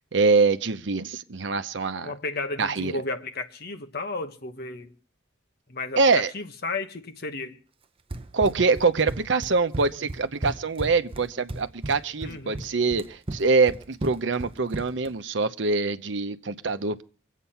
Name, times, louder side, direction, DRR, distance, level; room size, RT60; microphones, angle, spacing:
voice 1, 0.1-2.1 2.6-3.0 6.0-6.3 8.3-17.0, right 4 dB, 65° right, 0.8 m, -24 dB
voice 2, 2.0-4.9 5.7-6.0 6.3-7.6 12.2-12.6, left 3 dB, 55° left, 1.2 m, -33 dB
Run, 8.1-15.1, right 2 dB, 30° right, 0.7 m, -35 dB
24.0 x 8.3 x 5.7 m
head